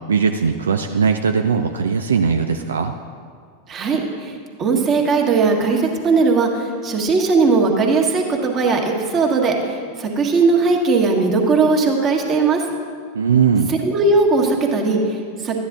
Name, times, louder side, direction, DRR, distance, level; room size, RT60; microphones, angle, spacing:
voice 1, 0.1-2.9 13.1-13.7, right 6 dB, 80° right, 6 dB, 0.4 m, -19 dB
voice 2, 3.7-12.6 13.7-15.6, right 4 dB, 30° right, 1 dB, 1.6 m, -18 dB
13.0 x 9.7 x 3.6 m, 2.1 s
figure-of-eight pair, 90°, 0 cm